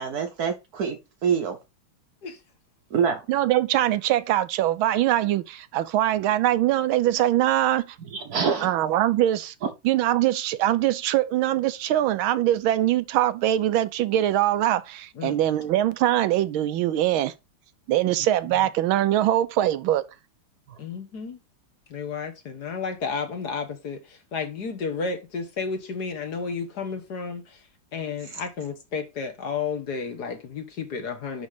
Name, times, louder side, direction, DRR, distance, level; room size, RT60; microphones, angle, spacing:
voice 1, 0.0-1.6 2.9-3.2 8.1-8.7, right 6 dB, 60° right, 1.2 m, -25 dB
voice 2, 3.3-8.0 8.6-9.5 9.8-17.3 17.9-20.0, right 13 dB, 80° right, 1.4 m, -22 dB
voice 3, 20.8-21.4 21.9-27.6 27.9-31.5, left 5 dB, 55° left, 1.7 m, -32 dB
10.5 x 3.6 x 4.9 m
omnidirectional pair, 2.3 m